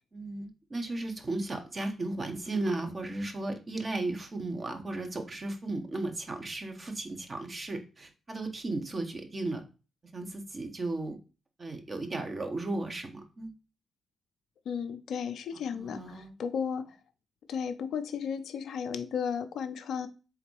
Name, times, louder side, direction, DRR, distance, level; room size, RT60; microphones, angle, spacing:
voice 1, 0.1-9.6 10.1-11.2 11.6-13.5 15.7-16.3, right 2 dB, 40° right, 5 dB, 1.0 m, -35 dB
voice 2, 14.7-17.0 17.5-20.1, left 7 dB, 70° left, 10 dB, 0.4 m, -34 dB
3.7 x 3.5 x 3.1 m, 0.32 s
hypercardioid pair, 40°, 0 cm